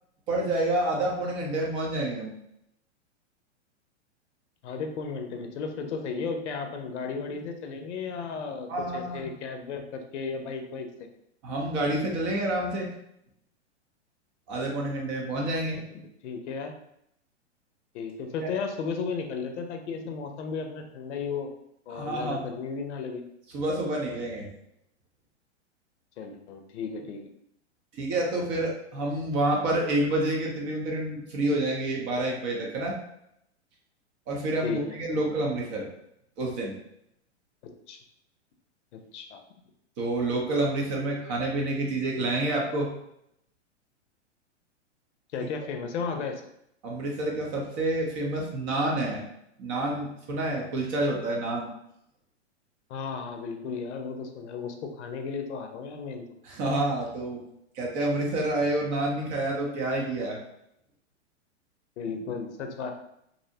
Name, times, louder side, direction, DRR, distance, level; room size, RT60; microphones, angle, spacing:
voice 1, 0.3-2.3 8.7-9.3 11.4-12.9 14.5-15.8 18.4-18.5 21.9-22.5 23.5-24.5 27.9-33.0 34.3-35.9 36.4-36.7 40.0-42.9 46.8-49.2 49.6-51.7 56.4-57.4 57.7-60.4, right 1 dB, 35° right, -1 dB, 0.6 m, -28 dB
voice 2, 4.6-11.1 15.8-16.7 17.9-21.5 21.9-23.2 26.2-27.2 34.6-35.3 37.9-38.0 38.9-39.4 45.3-46.4 52.9-56.3 62.0-62.9, left 5 dB, 75° left, 5 dB, 0.5 m, -34 dB
2.6 x 2.0 x 2.7 m, 0.77 s
hypercardioid pair, 125°, 35 cm